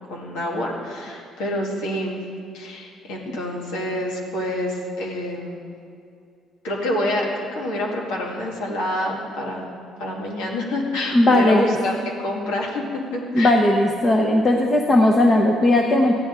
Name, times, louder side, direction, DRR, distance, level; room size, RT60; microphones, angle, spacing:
voice 1, 0.0-2.2 2.5-5.6 6.6-9.7 10.0-12.0 12.2-13.6, left 1 dB, 90° left, -1 dB, 1.9 m, -27 dB
voice 2, 11.1-11.8 13.3-16.2, left 1 dB, 35° left, 1 dB, 0.9 m, -17 dB
14.5 x 10.0 x 3.7 m, 2.4 s
cardioid pair, 95°, 0 cm